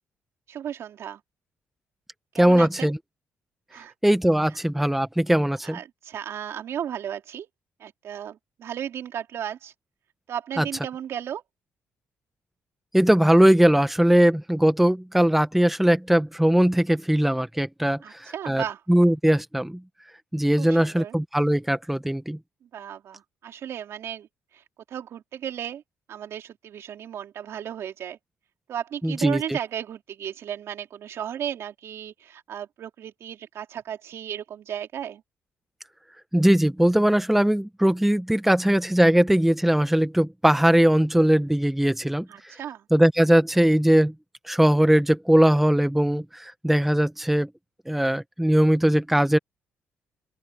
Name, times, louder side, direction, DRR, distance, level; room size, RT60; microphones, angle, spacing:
voice 1, 0.5-1.2 2.3-2.9 3.7-3.9 5.6-7.5 7.8-9.7 10.3-11.4 18.0-18.8 20.6-21.2 22.7-24.3 24.9-25.8 26.1-28.2 28.7-35.2 42.3-42.8, right 9 dB, 65° right, 3.3 m, -34 dB
voice 2, 2.4-3.0 4.0-5.8 10.6-10.7 12.9-19.8 20.3-22.4 29.0-29.4 36.3-42.3 42.9-44.1 44.5-47.5 47.9-49.4, right 1 dB, 5° right, 1.2 m, -20 dB
open air
cardioid pair, 90°, 5 cm